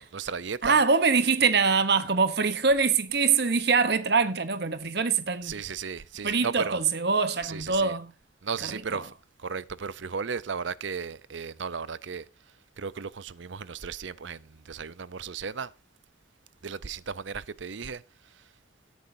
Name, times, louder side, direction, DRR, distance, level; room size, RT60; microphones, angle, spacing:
voice 1, 0.0-0.8 5.4-6.8 7.4-7.9 8.4-9.1 9.4-12.2 12.8-15.7 16.6-18.0, right 6 dB, 75° right, 0.6 m, -35 dB
voice 2, 0.6-5.6 6.2-8.1 8.6-9.1, right 5 dB, 55° right, 1.0 m, -24 dB
17.0 x 9.4 x 2.7 m
head